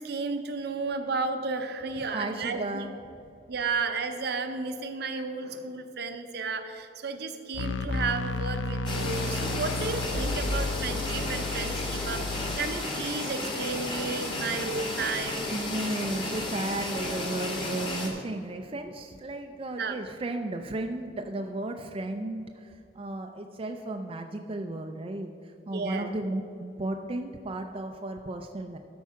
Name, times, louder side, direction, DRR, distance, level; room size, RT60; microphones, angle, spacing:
voice 1, 0.0-2.8 3.5-15.5 19.7-20.0 25.7-26.1, right 4 dB, 60° right, 8 dB, 0.7 m, -33 dB
voice 2, 2.0-3.0 15.5-25.3 25.7-28.8, right 2 dB, 30° right, 4 dB, 0.4 m, -34 dB
sound 1, 7.5-12.6, left 3 dB, 85° left, 0.5 m, -32 dB
sound 2, 8.9-18.1, left 1 dB, 30° left, 1.5 m, -33 dB
13.0 x 4.6 x 5.7 m, 2.7 s
head